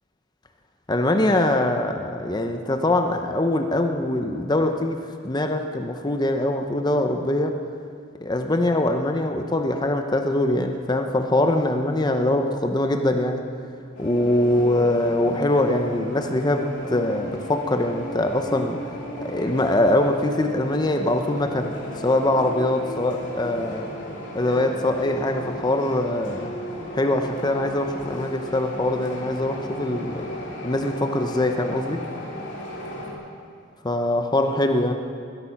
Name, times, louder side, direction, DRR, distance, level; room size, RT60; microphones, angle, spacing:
voice 1, 0.9-5.0 5.2-7.6 8.2-13.4 14.0-18.8 19.2-23.9 24.3-26.5 26.9-30.2 30.6-32.0 33.8-34.9, left 1 dB, 20° left, 5 dB, 0.7 m, -23 dB
sound 1, 13.9-33.1, left 1 dB, 70° left, 2.9 m, -35 dB
21.5 x 8.6 x 5.9 m, 2.2 s
head